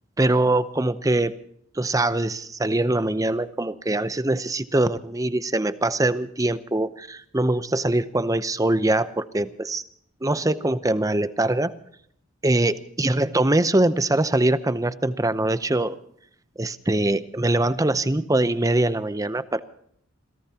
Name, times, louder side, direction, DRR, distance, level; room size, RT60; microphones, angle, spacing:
voice 1, 0.2-1.3 1.7-9.8 10.2-11.7 12.4-16.0 16.6-19.6, right 2 dB, 15° right, 13 dB, 0.7 m, -23 dB
27.5 x 17.5 x 2.9 m, 0.64 s
head